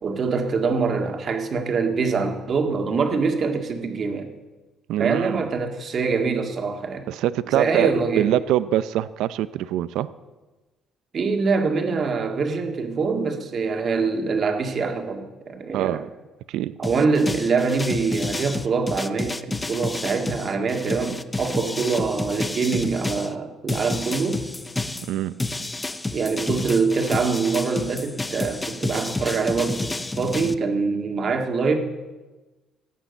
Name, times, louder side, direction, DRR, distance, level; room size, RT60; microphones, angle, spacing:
voice 1, 0.0-4.3 5.0-7.1 7.5-8.3 11.1-16.1 16.8-24.4 26.1-31.8, right 4 dB, 40° right, 4 dB, 1.9 m, -24 dB
voice 2, 4.9-5.4 7.1-10.1 15.7-16.1 16.5-16.7 25.1-25.3, right 13 dB, 80° right, 15 dB, 0.5 m, -24 dB
sound 1, 16.8-23.3 23.7-30.5, left 2 dB, 10° left, 0.6 m, -30 dB
17.0 x 8.8 x 8.2 m, 1.2 s
cardioid pair, 145°, 0 cm